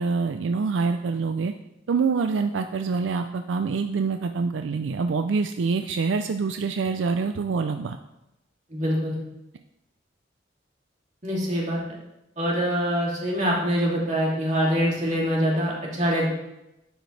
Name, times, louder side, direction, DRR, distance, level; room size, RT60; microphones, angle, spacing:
voice 1, 0.0-1.5 1.9-8.0, right 4 dB, 80° right, 7 dB, 0.4 m, -25 dB
voice 2, 8.7-9.2 11.2-11.8 12.4-16.3, equal, 40° right, -4 dB, 2.7 m, -24 dB
10.5 x 8.0 x 3.3 m, 0.92 s
head